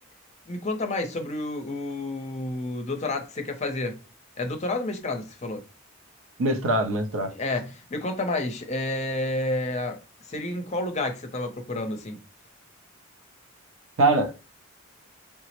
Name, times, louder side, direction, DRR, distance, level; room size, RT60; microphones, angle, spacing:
voice 1, 0.5-4.0 4.4-5.6 7.3-10.0 10.3-12.2, left 2 dB, 30° left, 0.5 m, -30 dB
voice 2, 6.4-7.3 14.0-14.3, right 2 dB, 75° right, 0.6 m, -22 dB
3.4 x 2.0 x 2.9 m
head